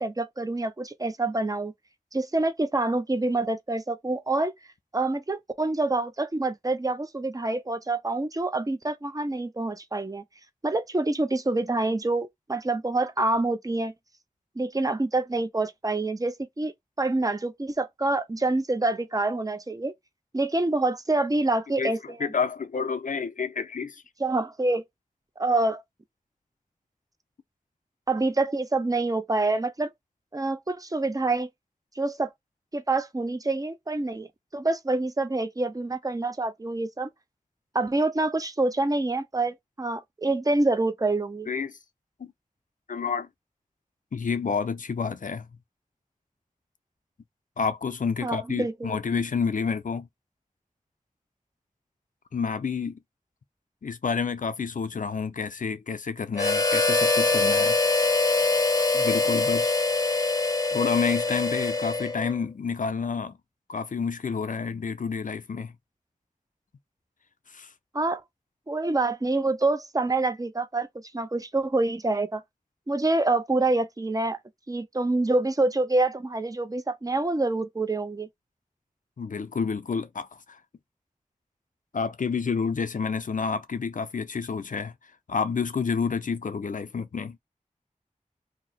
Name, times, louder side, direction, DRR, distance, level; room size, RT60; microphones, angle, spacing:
voice 1, 0.0-1.7 2.1-4.5 4.9-10.2 10.6-13.9 14.6-16.7 17.0-19.9 20.3-22.3 24.2-24.8 25.4-25.8 28.1-29.9 30.3-31.5 32.0-32.3 32.7-34.3 34.5-37.1 37.7-41.5 48.2-49.0 67.9-68.2 68.7-70.9 71.1-72.4 72.9-74.4 74.7-78.3, right 2 dB, 25° right, 0.5 m, -26 dB
voice 2, 21.8-24.0 41.5-41.7 42.2-42.3 42.9-43.3 44.1-45.5 47.6-50.1 52.3-53.0 53.8-57.8 58.9-59.8 60.7-63.4 63.7-65.7 67.5-67.7 79.2-80.4 81.9-84.9 85.3-87.4, left 5 dB, 70° left, 0.5 m, -29 dB
Harmonica, 56.3-62.4, left 3 dB, 25° left, 0.6 m, -24 dB
2.7 x 2.0 x 4.0 m
wide cardioid pair, 60°, 14 cm